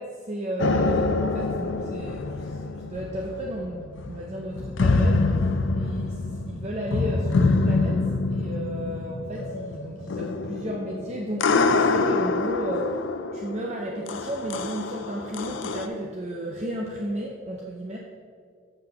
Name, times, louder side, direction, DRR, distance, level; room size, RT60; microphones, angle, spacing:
voice 1, 0.0-5.4 5.8-18.0, right 1 dB, 35° right, -1 dB, 0.6 m, -33 dB
sound 1, 0.6-15.9, left 3 dB, 65° left, 0.5 m, -26 dB
6.9 x 5.9 x 5.7 m, 2.1 s
head